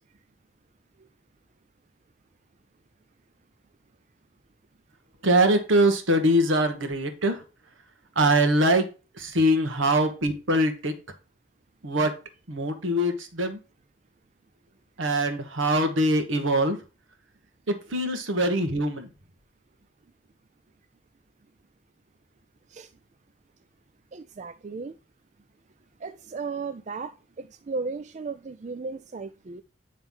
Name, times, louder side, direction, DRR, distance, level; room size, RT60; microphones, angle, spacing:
voice 1, 5.2-7.4 8.2-8.9 9.2-10.9 11.8-12.1 12.5-13.6 15.0-16.8 17.7-19.1, right 1 dB, 75° right, 1.4 m, -23 dB
voice 2, 9.5-9.9 22.7-22.9 24.1-24.9 26.0-27.1 27.4-29.6, right 4 dB, 35° right, 0.4 m, -35 dB
9.1 x 3.3 x 5.4 m
head